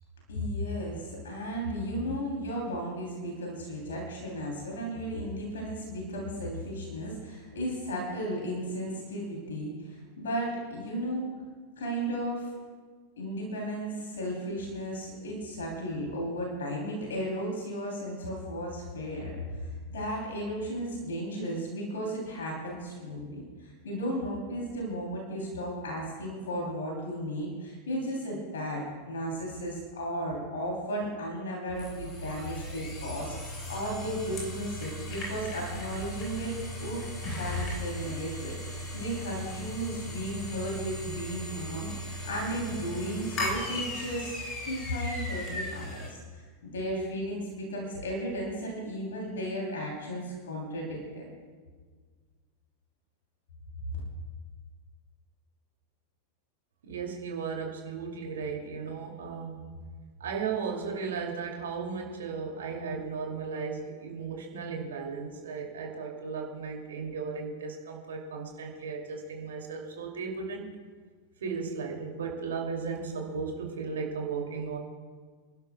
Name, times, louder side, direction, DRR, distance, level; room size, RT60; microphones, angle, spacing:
voice 1, 0.3-11.3 11.8-12.5 13.2-36.5 36.8-37.0 37.3-44.4 44.6-51.2, equal, 65° left, -2 dB, 3.2 m, -35 dB
sound 1, 31.7-46.1, left 1 dB, 30° left, 4.4 m, -37 dB
voice 2, 56.8-59.8 60.2-70.8 71.4-74.8, right 5 dB, 65° right, 1 dB, 2.6 m, -35 dB
29.0 x 12.0 x 2.3 m, 1.5 s
figure-of-eight pair, 90°, 0 cm